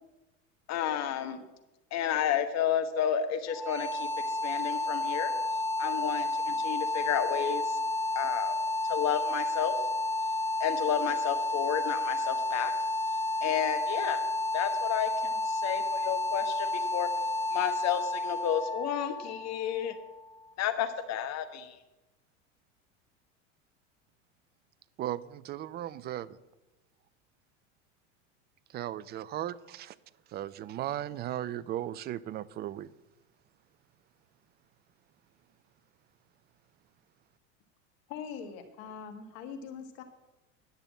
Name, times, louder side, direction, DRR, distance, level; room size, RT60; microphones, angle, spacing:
voice 1, 0.7-1.4 1.9-4.1 4.4-5.3 5.8-7.6 8.1-8.5 8.9-9.7 10.6-12.7 13.4-14.2 14.5-17.1 17.5-19.9 20.6-21.7, left 9 dB, 45° left, 9 dB, 1.3 m, -31 dB
sound 1, 3.5-20.4, left 2 dB, 5° left, 2.5 m, -31 dB
voice 2, 25.0-26.4 28.7-30.0 30.3-32.9, right 12 dB, 30° right, 19 dB, 0.4 m, -36 dB
voice 3, 38.1-40.0, left 7 dB, 60° left, 6 dB, 1.7 m, -42 dB
10.5 x 6.8 x 7.4 m, 1.0 s
hypercardioid pair, 90°, 37 cm